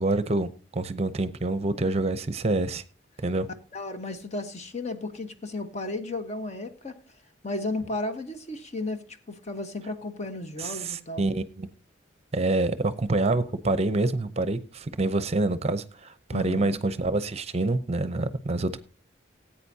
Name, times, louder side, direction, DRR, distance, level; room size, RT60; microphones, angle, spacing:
voice 1, 0.0-2.8 3.2-3.5 10.6-11.7 12.3-18.8, right 2 dB, 35° right, 0.7 m, -27 dB
voice 2, 3.7-7.0 7.4-11.3 16.3-16.8, left 2 dB, 40° left, 1.2 m, -34 dB
18.0 x 8.8 x 2.8 m
head